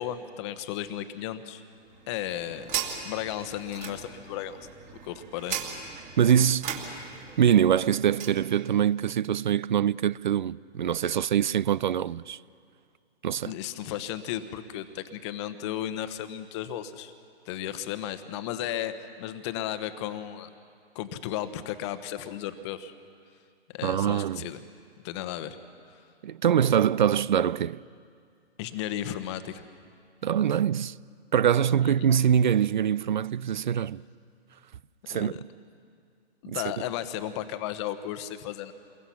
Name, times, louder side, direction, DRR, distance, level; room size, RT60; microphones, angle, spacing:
voice 1, 0.0-1.6 2.1-2.8 3.0-4.6 5.0-5.6 13.5-17.1 17.4-20.5 20.9-22.9 23.7-24.6 25.0-25.6 28.6-29.7 31.8-31.9 35.1-35.4 36.4-38.7, left 11 dB, 25° left, 1.1 m, -34 dB
sound 1, 1.8-8.4, right 7 dB, 20° right, 2.4 m, -38 dB
voice 2, 6.2-6.7 7.4-12.4 13.2-13.5 23.8-24.5 26.2-27.8 30.2-31.0 31.3-34.0 35.1-35.3 36.5-36.6, right 9 dB, 45° right, 0.5 m, -24 dB
29.0 x 22.5 x 5.8 m
hypercardioid pair, 140°, 33 cm